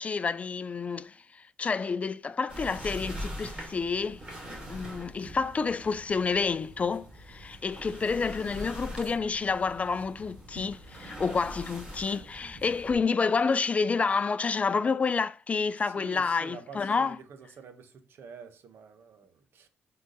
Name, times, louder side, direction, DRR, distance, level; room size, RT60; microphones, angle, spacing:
voice 1, 0.0-4.2 4.7-17.2, left 5 dB, 35° left, 0.4 m, -29 dB
sound 1, 2.5-12.9, equal, 20° right, 3.1 m, -43 dB
voice 2, 15.8-19.7, right 5 dB, 70° right, 1.2 m, -48 dB
6.1 x 3.8 x 5.3 m
cardioid pair, 95°, 4 cm